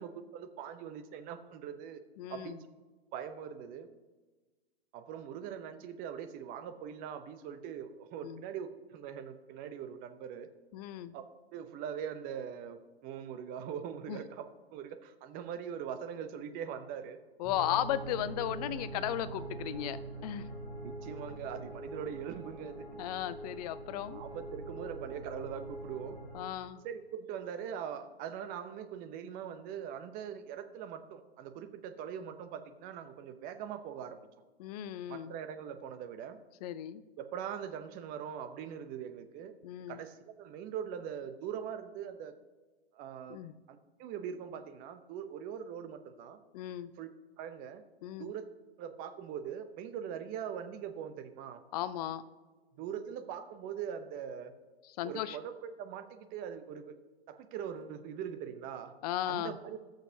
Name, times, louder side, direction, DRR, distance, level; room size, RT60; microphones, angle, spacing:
voice 1, 0.0-2.0 2.3-2.7 3.1-3.9 4.9-10.5 11.1-11.2 11.5-17.2 20.8-22.8 24.1-26.2 26.8-34.3 35.1-36.4 37.2-39.5 39.9-42.3 42.9-43.4 43.7-46.4 47.0-47.1 47.4-47.8 48.2-48.5 48.8-51.6 52.8-54.5 55.0-57.0 57.3-58.9 59.3-59.8, right 8 dB, 25° right, 9 dB, 0.7 m, -42 dB
voice 2, 2.2-2.6 8.2-8.4 10.7-11.1 14.1-14.2 17.4-20.5 23.0-24.2 26.3-26.8 34.6-35.3 36.6-37.0 39.6-40.0 43.3-43.5 46.5-46.9 48.0-48.3 51.7-52.2 55.0-55.4 59.0-59.6, left 12 dB, 40° left, 14 dB, 0.6 m, -36 dB
sound 1, 17.4-26.5, right 2 dB, 5° right, 2.8 m, -44 dB
18.5 x 6.5 x 2.8 m, 1.3 s
hypercardioid pair, 125°, 32 cm